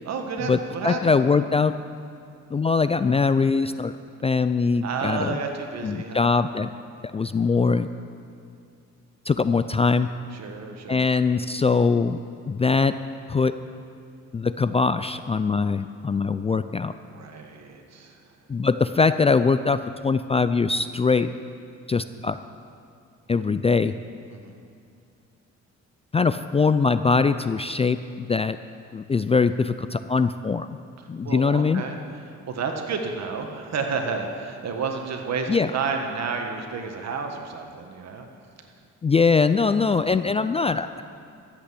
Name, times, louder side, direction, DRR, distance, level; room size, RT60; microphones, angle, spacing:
voice 1, 0.0-1.0 4.8-6.4 10.3-11.1 17.1-18.2 24.3-24.6 31.2-32.0 32.3-38.3, right 5 dB, 60° right, 4 dB, 1.8 m, -31 dB
voice 2, 0.8-1.7 2.5-3.9 4.2-5.4 5.8-6.7 7.0-7.9 9.3-10.1 10.9-12.2 12.5-13.0 13.3-13.5 14.3-16.9 18.5-21.3 21.9-22.4 23.3-24.0 26.1-28.6 28.9-30.8 31.1-31.8 35.5-35.7 39.0-41.0, left 4 dB, 20° left, 12 dB, 0.3 m, -22 dB
13.5 x 8.3 x 8.4 m, 2.4 s
cardioid pair, 90°, 30 cm